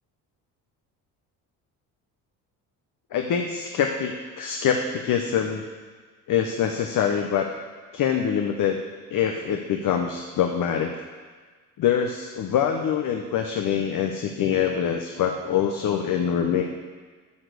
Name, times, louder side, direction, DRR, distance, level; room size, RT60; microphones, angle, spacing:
voice 1, 3.1-5.6 6.3-7.5 7.9-8.8 9.1-10.9 11.8-16.6, left 8 dB, 60° left, 4 dB, 0.9 m, -24 dB
9.7 x 6.1 x 6.7 m, 1.5 s
supercardioid pair, 80°, 38 cm